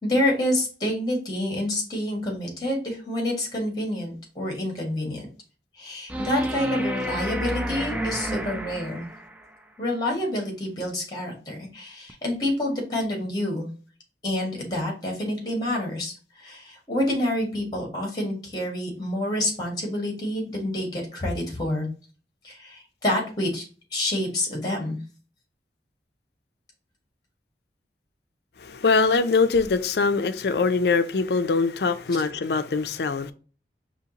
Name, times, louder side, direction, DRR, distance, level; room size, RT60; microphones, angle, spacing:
voice 1, 0.0-5.3 5.8-9.1 9.8-13.7 14.2-21.9 22.4-23.6 23.9-25.0, left 1 dB, 25° left, 1.7 m, -28 dB
sound 1, 6.1-9.4 12.1-12.2, equal, 10° right, 0.4 m, -30 dB
voice 2, 28.6-33.3, left 4 dB, 65° left, 0.4 m, -23 dB
5.2 x 2.8 x 2.8 m
head